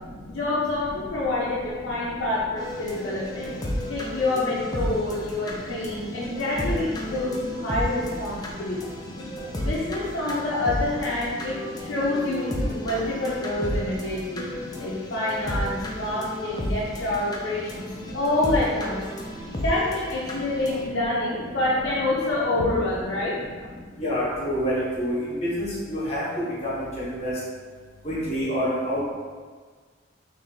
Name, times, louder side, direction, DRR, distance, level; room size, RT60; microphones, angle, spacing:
voice 1, 0.3-3.5 3.9-8.9 9.6-14.5 14.8-17.9 18.1-19.0 19.6-23.7, left 2 dB, 70° left, -8 dB, 0.6 m, -27 dB
sound 1, 2.6-20.8, left 1 dB, 20° left, 0.4 m, -33 dB
voice 2, 24.0-26.2 26.6-27.3 28.0-29.0, equal, 35° left, -9 dB, 1.2 m, -27 dB
3.3 x 2.6 x 3.8 m, 1.5 s
head